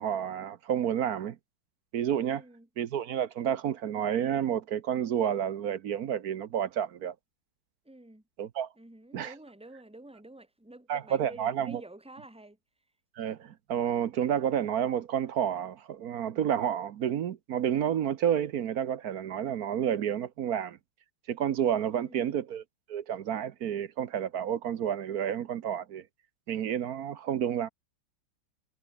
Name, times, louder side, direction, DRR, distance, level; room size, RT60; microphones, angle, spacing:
voice 1, 0.0-1.4 1.9-2.4 2.8-7.1 8.4-8.7 9.1-9.3 10.9-11.8 13.2-20.8 21.3-22.6 22.9-26.0 26.5-27.7, right 9 dB, 60° right, 1.2 m, -30 dB
voice 2, 2.3-2.7 7.8-8.2 8.8-12.6 21.9-22.3, right 1 dB, 5° right, 2.7 m, -50 dB
omnidirectional pair, 2.0 m